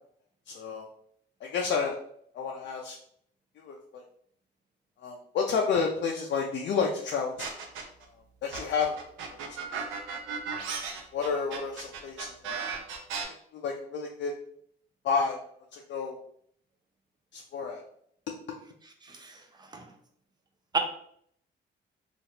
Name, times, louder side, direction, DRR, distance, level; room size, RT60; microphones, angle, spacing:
voice 1, 0.5-0.9 1.4-2.0 2.3-3.0 3.6-4.0 5.0-7.5 8.4-9.0 9.3-9.7 11.1-12.6 13.5-14.3 15.0-15.4 15.7-16.2 17.3-17.8, left 5 dB, 65° left, 0 dB, 0.5 m, -30 dB
sound 1, 7.4-8.0 8.5-13.2, right 6 dB, 90° right, 0.6 m, -35 dB
voice 2, 19.0-19.9 20.7-20.8, right 3 dB, 20° right, 4 dB, 0.6 m, -33 dB
3.1 x 2.4 x 2.8 m, 0.66 s
cardioid pair, 90°, 20 cm